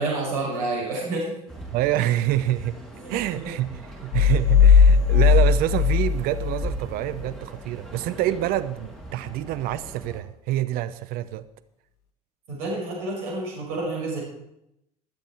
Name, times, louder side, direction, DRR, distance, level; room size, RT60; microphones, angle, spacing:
voice 1, 0.0-1.4 3.0-3.5 12.5-14.2, right 2 dB, 70° right, -2 dB, 6.0 m, -29 dB
sound 1, 1.5-10.2, right 2 dB, 5° left, 5.8 m, -41 dB
voice 2, 1.7-2.8 3.1-11.4, right 14 dB, 50° right, 13 dB, 0.9 m, -27 dB
sound 2, 4.1-6.8, left 6 dB, 80° left, 0.9 m, -17 dB
22.5 x 7.7 x 4.6 m, 0.80 s
hypercardioid pair, 75°, 19 cm